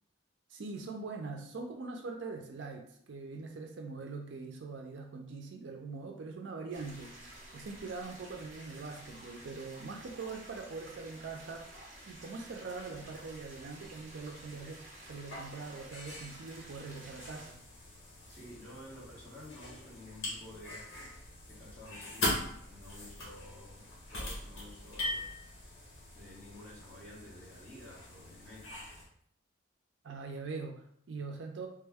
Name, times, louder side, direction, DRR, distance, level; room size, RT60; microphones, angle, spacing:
voice 1, 0.5-11.7 12.0-17.6 30.0-31.7, right 4 dB, 60° right, 2 dB, 0.4 m, -43 dB
sound 1, 6.7-17.5, right 1 dB, 35° right, 1.0 m, -52 dB
sound 2, 12.8-29.0, left 1 dB, 75° left, 1.1 m, -42 dB
voice 2, 18.3-20.9 21.5-25.3 26.2-28.8, left 1 dB, 10° left, -7 dB, 0.9 m, -51 dB
3.4 x 2.1 x 3.4 m, 0.68 s
head